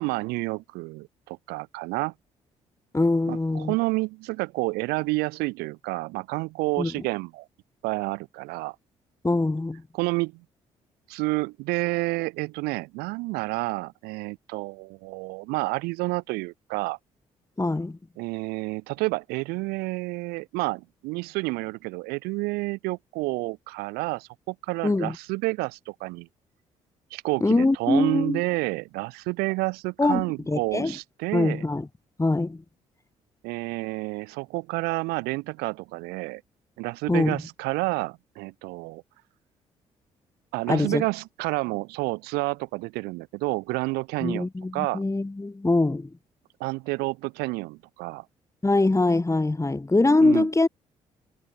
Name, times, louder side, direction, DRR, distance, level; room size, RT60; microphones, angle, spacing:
voice 1, 0.0-2.1 3.3-7.5 7.8-8.7 9.9-10.4 11.1-17.0 18.2-26.3 27.1-31.6 33.4-36.4 36.8-39.0 40.5-44.5 44.7-45.0 46.6-48.2 50.2-50.5, right 24 dB, 70° right, 3.1 m, -29 dB
voice 2, 2.9-3.7 6.8-6.9 9.2-9.8 17.6-18.0 24.8-25.2 27.4-28.4 30.0-30.9 31.3-31.9 32.2-32.6 37.1-37.4 40.7-41.0 44.2-46.2 48.6-50.7, left 2 dB, 20° left, 3.2 m, -23 dB
figure-of-eight pair, 45°, 17 cm